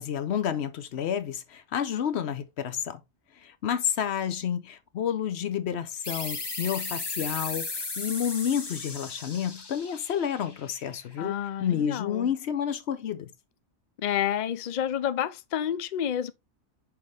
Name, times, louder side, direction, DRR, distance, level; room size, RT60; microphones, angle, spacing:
voice 1, 0.0-3.0 3.4-13.3, left 8 dB, 60° left, 0.9 m, -30 dB
sound 1, 6.0-11.3, left 3 dB, 25° left, 0.6 m, -36 dB
voice 2, 11.2-12.3 14.0-16.3, left 10 dB, 85° left, 0.4 m, -29 dB
5.9 x 4.7 x 3.4 m
omnidirectional pair, 1.4 m